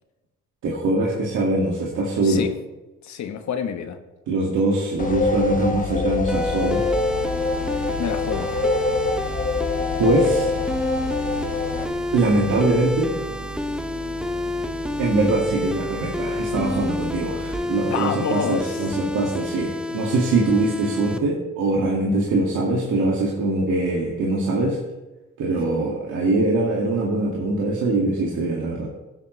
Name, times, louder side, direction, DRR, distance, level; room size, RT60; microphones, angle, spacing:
voice 1, 0.6-2.4 4.3-6.8 10.0-10.6 12.1-13.2 15.0-24.8 25.4-28.9, right 2 dB, 80° right, -3 dB, 2.1 m, -22 dB
voice 2, 3.0-4.0 8.0-8.5 17.9-18.8, left 7 dB, 65° left, 7 dB, 1.2 m, -27 dB
sound 1, 5.0-11.9, left 4 dB, 25° left, 1.0 m, -25 dB
sound 2, 6.3-21.2, left 1 dB, 5° right, 0.6 m, -29 dB
sound 3, 6.9-17.5, right 2 dB, 65° right, 3.6 m, -37 dB
15.0 x 8.6 x 3.2 m, 1.1 s
cardioid pair, 90°, 30 cm